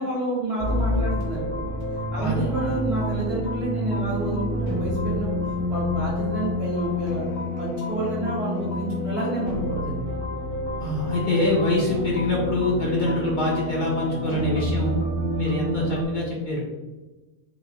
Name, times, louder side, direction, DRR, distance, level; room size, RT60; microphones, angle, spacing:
voice 1, 0.0-1.6 2.1-5.4 5.7-7.3 7.6-10.0, right 2 dB, 55° right, -6 dB, 1.8 m, -29 dB
sound 1, 0.6-16.1, left 1 dB, 80° left, 1.8 m, -28 dB
voice 2, 2.2-2.5 10.8-15.0 15.4-16.6, left 2 dB, 45° left, -4 dB, 0.9 m, -24 dB
4.8 x 2.3 x 3.9 m, 1.2 s
omnidirectional pair, 1.3 m